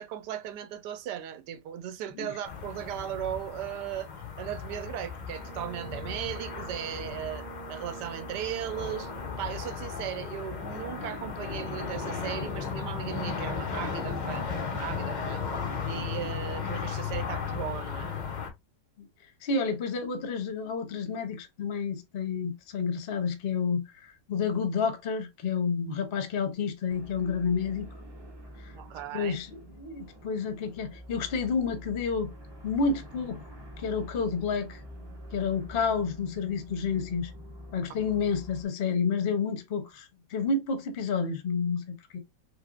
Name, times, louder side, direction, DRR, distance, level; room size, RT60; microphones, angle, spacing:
voice 1, 0.0-4.1 4.4-9.1 9.4-14.5 14.8-15.4 15.9-18.1 28.7-29.4, right 10 dB, 75° right, 1.2 m, -37 dB
sound 1, 2.5-18.5, left 6 dB, 90° left, 0.4 m, -35 dB
Brass instrument, 5.3-9.7, right 11 dB, 55° right, 0.8 m, -46 dB
voice 2, 19.4-27.9 28.6-28.7 29.1-32.3 32.6-33.4 33.8-34.8 35.3-37.3 37.7-41.8 42.1-42.2, left 5 dB, 50° left, 0.7 m, -30 dB
sound 2, 26.9-38.6, equal, 30° right, 0.5 m, -46 dB
3.3 x 3.2 x 2.4 m
omnidirectional pair, 1.9 m